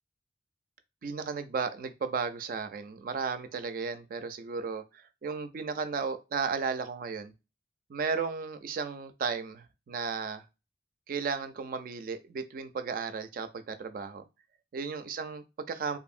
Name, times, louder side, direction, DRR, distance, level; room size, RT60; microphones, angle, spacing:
voice 1, 1.0-7.3 7.9-10.4 11.1-14.2 14.7-16.0, right 5 dB, 50° right, 0.3 m, -34 dB
2.7 x 2.5 x 2.4 m
head